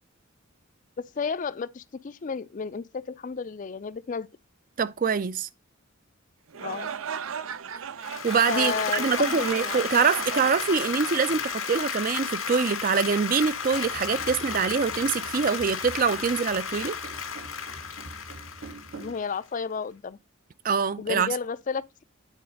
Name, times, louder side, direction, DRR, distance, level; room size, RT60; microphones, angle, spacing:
voice 1, 1.0-4.3 6.6-6.9 8.5-9.8 19.0-20.2 21.0-22.0, left 5 dB, 40° left, 0.4 m, -32 dB
voice 2, 4.8-5.5 8.2-16.9 20.6-21.3, right 5 dB, 40° right, 0.4 m, -24 dB
sound 1, 6.5-11.7, right 7 dB, 90° right, 0.6 m, -36 dB
Applause, 8.0-19.4, left 6 dB, 85° left, 1.9 m, -33 dB
sound 2, 13.7-19.2, right 2 dB, 65° right, 1.1 m, -45 dB
9.2 x 4.2 x 5.1 m
head